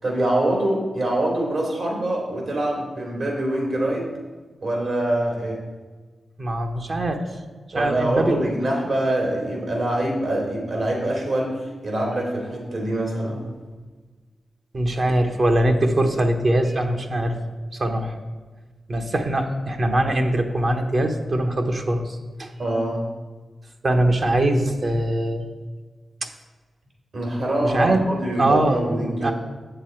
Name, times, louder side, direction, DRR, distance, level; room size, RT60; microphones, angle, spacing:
voice 1, 0.0-4.1 4.6-5.6 7.7-13.4 22.6-23.1 27.1-29.3, right 1 dB, 70° right, -1 dB, 2.7 m, -24 dB
voice 2, 6.4-7.2 7.7-8.5 14.7-17.4 17.8-18.2 18.9-22.5 23.8-25.5 26.2-26.3 27.6-28.0 28.4-28.8 29.2-29.3, right 1 dB, 50° right, 4 dB, 0.9 m, -22 dB
7.6 x 6.8 x 4.4 m, 1.4 s
cardioid pair, 70°, 0 cm